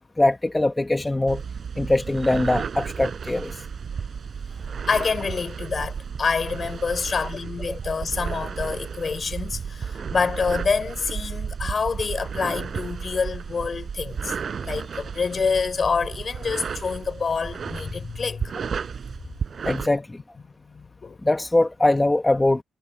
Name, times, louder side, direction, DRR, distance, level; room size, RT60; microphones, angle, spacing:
voice 1, 0.2-1.4 1.8-3.6 7.7-7.8 19.6-20.2 21.2-22.6, left 2 dB, 15° left, 1.3 m, -22 dB
sound 1, 1.3-19.9, right 6 dB, 45° right, 5.3 m, -33 dB
voice 2, 4.9-14.4 14.6-18.5 19.7-19.8 20.6-21.2, left 5 dB, 40° left, 4.0 m, -27 dB
cardioid pair, 90°, 0 cm